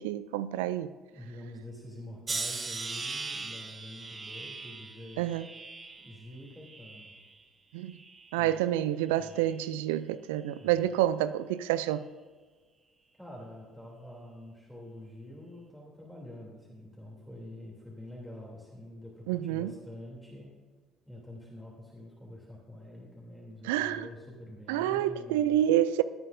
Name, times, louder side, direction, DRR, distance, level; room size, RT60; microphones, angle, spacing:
voice 1, 0.0-1.0 5.2-5.5 7.7-8.0 8.3-12.1 19.3-19.8 23.6-24.1 24.7-26.0, right 12 dB, 75° right, 0.4 m, -28 dB
voice 2, 1.0-5.3 6.0-7.2 8.4-8.6 9.2-9.4 10.6-10.8 13.2-20.5 21.1-25.6, left 1 dB, 5° right, 3.1 m, -47 dB
sound 1, 2.3-7.4 7.9-8.6 9.3-9.6, right 4 dB, 30° right, 1.1 m, -40 dB
18.0 x 9.3 x 2.7 m
hypercardioid pair, 55°, 0 cm